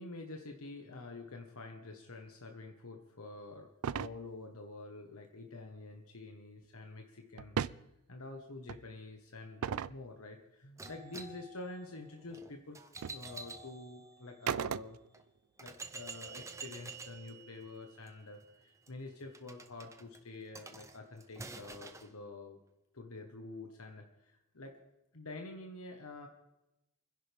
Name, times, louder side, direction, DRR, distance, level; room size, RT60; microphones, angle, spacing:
voice 1, 0.0-12.8 13.1-15.0 15.6-22.6 22.9-24.8 25.1-26.3, left 2 dB, 85° left, 3 dB, 1.4 m, -48 dB
sound 1, 3.8-4.1 7.4-7.8 8.7-8.8 9.6-10.0 12.3-12.4 13.0-13.2 14.5-15.2, right 7 dB, 80° right, 0.4 m, -35 dB
sound 2, 10.8-14.6 15.1-15.2 15.6-22.1, right 4 dB, 15° right, 0.7 m, -49 dB
28.5 x 10.5 x 3.5 m, 0.93 s
head